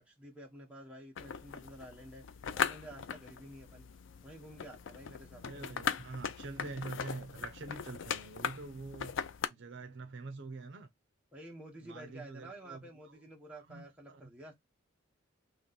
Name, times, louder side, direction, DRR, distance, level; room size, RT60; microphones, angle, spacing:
voice 1, 0.0-2.2 2.5-3.9 4.2-5.4 11.3-14.5, right 1 dB, 5° right, 1.1 m, -50 dB
sound 1, 1.2-9.5, left 7 dB, 60° left, 0.4 m, -39 dB
voice 2, 5.4-9.1 9.5-10.9 11.8-13.2 13.5-14.3, right 3 dB, 60° right, 0.6 m, -45 dB
3.0 x 3.0 x 4.0 m
head